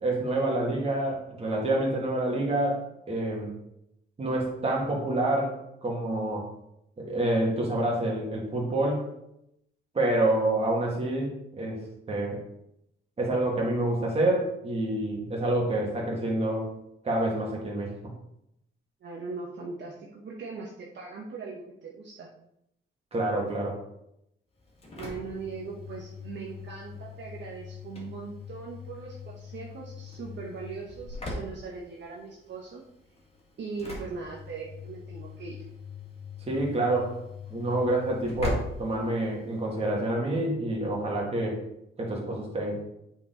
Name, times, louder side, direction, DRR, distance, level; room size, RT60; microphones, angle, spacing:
voice 1, 0.0-2.8 3.1-3.5 4.2-6.5 7.0-9.1 9.9-11.8 12.1-12.4 13.2-16.7 17.0-17.9 23.1-23.8 36.5-37.2 37.5-41.6 42.0-42.8, right 1 dB, 30° right, -2 dB, 2.3 m, -27 dB
voice 2, 19.0-22.3 25.0-32.8 33.6-35.6, right 4 dB, 60° right, -3 dB, 1.2 m, -40 dB
Engine / Slam, 24.6-39.7, left 3 dB, 30° left, 2.1 m, -41 dB
8.6 x 4.6 x 4.0 m, 0.79 s
cardioid pair, 140°, 21 cm